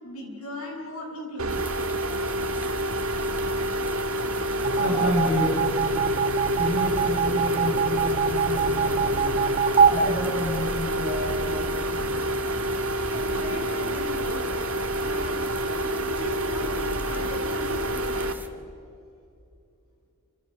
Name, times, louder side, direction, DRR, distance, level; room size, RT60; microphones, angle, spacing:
voice 1, 0.0-1.7 13.1-14.5 14.9-18.3, left 1 dB, 80° left, 0 dB, 7.9 m, -37 dB
sound 1, 1.4-18.3, right 1 dB, 75° right, 1.8 m, -28 dB
sound 2, 1.5-18.5, right 3 dB, 10° right, 1.8 m, -44 dB
sound 3, 4.6-11.1, right 5 dB, 30° right, 1.2 m, -24 dB
voice 2, 4.8-5.6 6.6-9.5 9.9-12.2, left 1 dB, 60° left, -1 dB, 5.4 m, -30 dB
28.5 x 28.0 x 6.5 m, 2.5 s
head